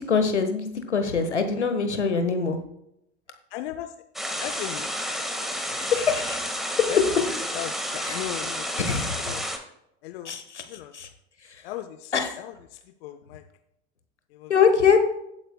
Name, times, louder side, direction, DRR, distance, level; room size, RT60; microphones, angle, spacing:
voice 1, 0.0-2.6 5.7-6.4 8.0-8.2 8.8-9.4 10.2-10.6 10.9-11.1 12.1-12.3 14.5-15.0, left 6 dB, 85° left, 7 dB, 1.3 m, -23 dB
voice 2, 3.5-3.9 4.4-4.9 6.9-9.4 10.0-10.4 10.7-10.9 11.6-13.4 14.3-14.5, left 13 dB, 60° left, 10 dB, 0.7 m, -37 dB
sound 1, 4.2-9.6, equal, ahead, 1.6 m, -31 dB
17.0 x 8.6 x 2.2 m, 0.79 s
figure-of-eight pair, 75°, 34 cm